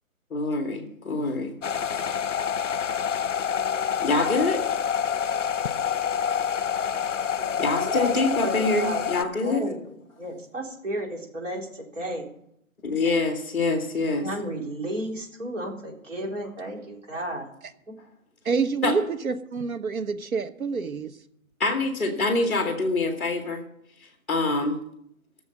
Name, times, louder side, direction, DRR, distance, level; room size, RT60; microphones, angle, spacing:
voice 1, 0.3-1.5 1.9-2.0 4.0-4.6 7.6-9.6 12.8-14.3 18.8-18.9 21.6-23.6 24.3-24.8, left 3 dB, ahead, 4 dB, 1.2 m, -25 dB
sound 1, 1.6-9.2, left 8 dB, 60° left, 0.7 m, -27 dB
voice 2, 7.4-9.0 9.4-9.8 10.2-12.2 14.2-17.5, right 1 dB, 60° right, -1 dB, 3.9 m, -33 dB
voice 3, 18.4-21.2, right 5 dB, 75° right, 9 dB, 1.3 m, -27 dB
14.5 x 7.0 x 7.5 m, 0.73 s
hypercardioid pair, 170°, 42 cm